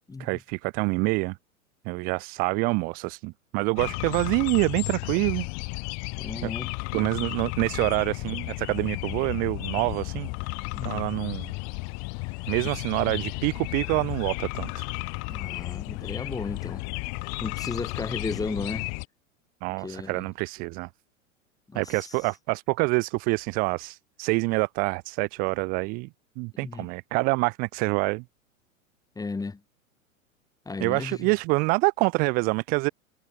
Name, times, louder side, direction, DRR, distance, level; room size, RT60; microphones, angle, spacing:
voice 1, 0.2-1.4 1.9-5.5 6.4-6.5 6.9-10.3 10.8-11.5 12.5-14.8 19.6-20.9 21.7-26.1 26.4-28.2 30.8-32.9, right 29 dB, 25° right, 0.4 m, -26 dB
sound 1, 3.8-19.0, left 36 dB, 40° left, 1.9 m, -33 dB
voice 2, 6.2-6.7 10.7-11.0 15.3-16.8 17.4-18.9 19.8-20.3 21.7-22.1 26.6-26.9 29.2-29.6 30.7-31.3, left 3 dB, 10° left, 2.3 m, -34 dB
figure-of-eight pair, 100°, 41 cm